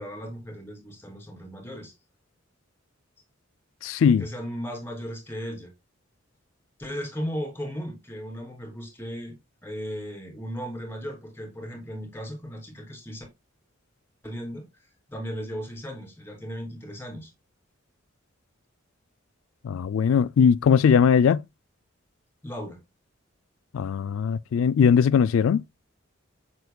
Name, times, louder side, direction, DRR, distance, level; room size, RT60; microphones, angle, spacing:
voice 1, 0.0-1.9 4.2-5.7 6.8-9.4 9.6-13.3 14.2-14.6 15.1-17.3 22.4-22.8, equal, 10° left, 2.9 m, -36 dB
voice 2, 3.8-4.2 19.6-21.4 23.7-25.6, left 7 dB, 90° left, 0.3 m, -20 dB
8.0 x 6.8 x 2.2 m
head